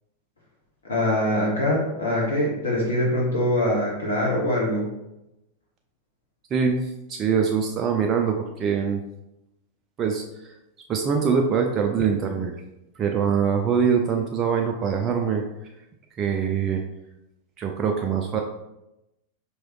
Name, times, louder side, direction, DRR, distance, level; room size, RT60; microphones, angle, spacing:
voice 1, 0.9-4.8, left 1 dB, 70° left, -3 dB, 0.9 m, -23 dB
voice 2, 6.5-9.0 10.0-10.6 10.9-12.6 13.0-15.4 16.2-16.8 17.6-18.4, right 6 dB, 30° right, 2 dB, 0.3 m, -23 dB
4.8 x 3.1 x 3.0 m, 0.91 s
figure-of-eight pair, 90°, 0 cm